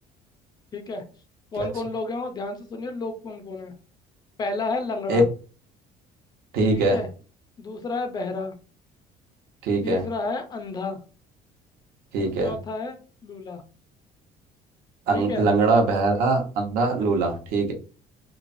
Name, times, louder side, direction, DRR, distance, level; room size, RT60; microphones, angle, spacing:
voice 1, 0.7-1.0 1.5-3.7 4.4-5.3 6.7-7.1 7.6-8.5 9.8-11.0 12.2-13.6 15.1-15.4 17.0-17.1, left 3 dB, 25° left, 6 dB, 0.4 m, -31 dB
voice 2, 6.5-7.0 9.6-10.0 12.1-12.5 15.1-17.7, right 3 dB, 75° right, 2 dB, 0.8 m, -22 dB
3.0 x 2.0 x 2.5 m, 0.36 s
cardioid pair, 170°, 16 cm